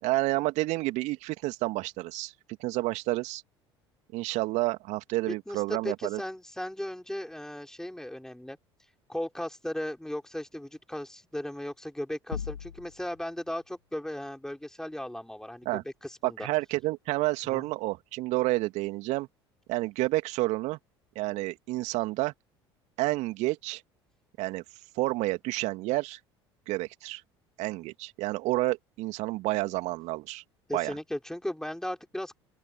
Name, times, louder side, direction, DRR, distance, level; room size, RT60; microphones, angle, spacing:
voice 1, 0.0-2.3 2.6-3.4 4.1-6.2 15.6-15.8 16.2-19.3 19.7-20.8 21.1-22.3 23.0-23.8 24.4-24.6 25.0-26.2 26.7-27.2 27.6-30.4 30.7-30.9, right 20 dB, 55° right, 2.9 m, -29 dB
voice 2, 5.3-8.6 9.1-16.5 17.5-17.7 30.7-32.4, left 1 dB, 5° left, 5.9 m, -36 dB
sound 1, 12.3-13.3, left 8 dB, 80° left, 1.1 m, -37 dB
open air
figure-of-eight pair, 65°, 14 cm